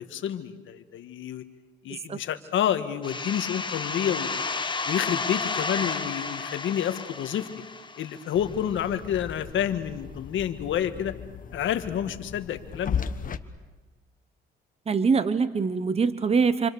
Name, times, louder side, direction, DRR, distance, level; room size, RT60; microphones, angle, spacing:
voice 1, 0.0-1.4 1.8-4.4 4.9-7.5 8.0-11.1 11.5-13.0, left 10 dB, 75° left, 8 dB, 1.7 m, -29 dB
sound 1, 3.0-8.6, left 4 dB, 25° left, 1.5 m, -32 dB
sound 2, 8.3-13.4, left 7 dB, 45° left, 1.3 m, -36 dB
voice 2, 14.9-16.7, right 5 dB, 30° right, 12 dB, 1.1 m, -23 dB
28.0 x 26.0 x 7.0 m, 1.2 s
cardioid pair, 90°, 20 cm